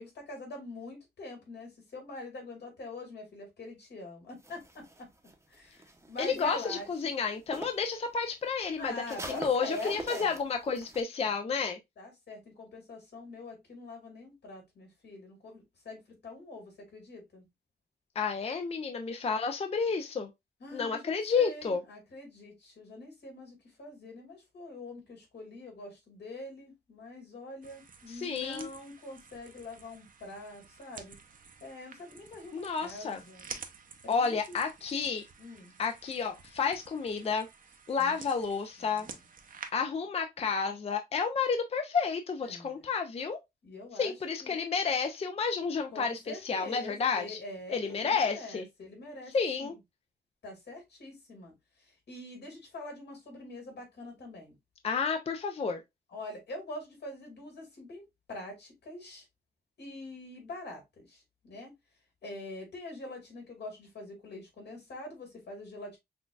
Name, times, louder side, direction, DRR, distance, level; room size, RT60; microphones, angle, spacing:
voice 1, 0.0-5.1 5.5-6.9 8.8-10.3 12.0-17.4 20.6-31.1 31.6-33.5 34.2-34.6 35.4-35.7 38.0-38.2 38.8-39.0 42.4-42.9 43.6-44.1 44.4-44.6 45.9-49.8 50.4-54.5 56.1-58.0 58.3-59.3 59.8-61.7 62.2-66.0, left 2 dB, 80° left, 2.1 m, -44 dB
sound 1, 4.4-7.9 8.2-11.0, right 1 dB, 15° right, 0.7 m, -45 dB
voice 2, 6.2-11.8 18.2-20.3 20.7-21.8 28.1-28.7 32.5-33.2 34.1-35.3 35.8-37.5 37.9-39.1 39.7-43.4 43.9-47.4 47.7-48.7 49.3-49.7 54.8-55.8, left 5 dB, 35° left, 0.4 m, -31 dB
sound 2, 27.6-39.7, right 5 dB, 50° right, 0.6 m, -50 dB
5.9 x 2.3 x 2.3 m
wide cardioid pair, 110°, 17 cm